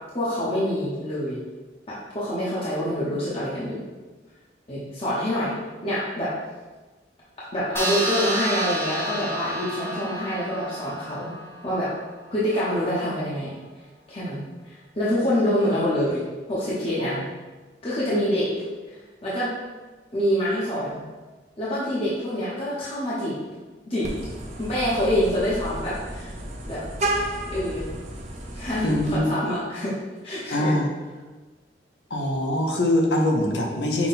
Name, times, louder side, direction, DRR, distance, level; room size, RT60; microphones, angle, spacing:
voice 1, 0.1-1.4 2.1-3.8 4.7-5.5 5.8-6.3 7.5-11.3 11.6-11.9 12.3-13.5 14.1-16.2 16.5-17.1 17.8-18.5 18.9-19.5 20.1-21.0 21.6-23.4 23.9-24.1 24.6-26.3 26.7-26.8 27.5-27.9 28.5-29.9 30.2-30.8, equal, 35° left, -9 dB, 0.9 m, -26 dB
sound 1, 7.8-12.6, right 1 dB, 15° left, 0.5 m, -31 dB
Vehicle horn car horn honking, 24.0-29.2, right 1 dB, 40° right, 0.6 m, -32 dB
voice 2, 28.8-29.3 30.5-30.9 32.1-34.1, left 1 dB, 80° left, 1 dB, 0.8 m, -23 dB
5.8 x 2.2 x 4.1 m, 1.3 s
head